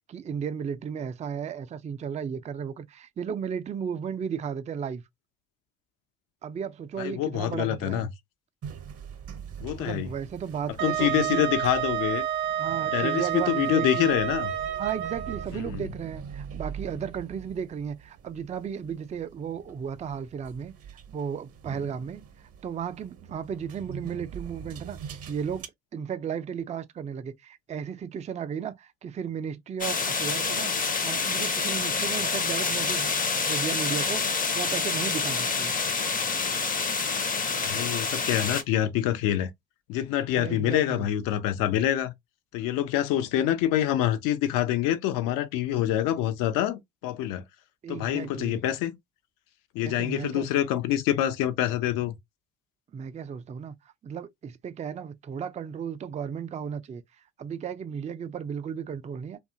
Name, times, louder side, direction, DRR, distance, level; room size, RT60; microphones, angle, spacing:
voice 1, 0.1-5.0 6.4-8.1 9.8-11.5 12.6-14.2 14.8-20.7 21.1-30.7 31.0-33.1 33.5-34.2 34.5-35.7 40.4-41.1 47.8-48.6 49.8-50.5 52.9-53.7 54.0-57.0 57.4-59.4, right 7 dB, 20° right, 0.4 m, -34 dB
voice 2, 7.0-8.1 9.6-10.1 10.8-12.2 12.9-14.5 15.5-15.8 37.6-39.5 39.9-42.1 42.5-47.4 47.9-48.9 49.7-52.1, left 12 dB, 65° left, 0.6 m, -26 dB
sound 1, 8.6-25.7, right 7 dB, 40° right, 0.7 m, -43 dB
Wind instrument woodwind instrument, 10.8-15.5, right 10 dB, 90° right, 0.5 m, -29 dB
sound 2, 29.8-38.6, left 4 dB, 25° left, 0.6 m, -27 dB
2.6 x 2.3 x 2.5 m
hypercardioid pair, 60°, 35 cm